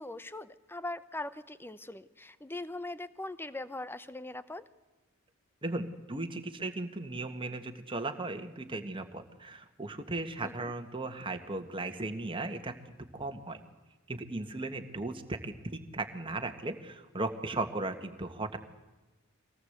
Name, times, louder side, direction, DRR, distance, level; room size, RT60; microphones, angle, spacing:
voice 1, 0.0-4.6 10.4-10.7, left 2 dB, 10° left, 15 dB, 0.7 m, -41 dB
voice 2, 5.6-12.7 13.1-13.6 14.1-18.6, right 2 dB, 25° right, 6 dB, 1.8 m, -36 dB
24.0 x 18.0 x 8.2 m, 1.2 s
head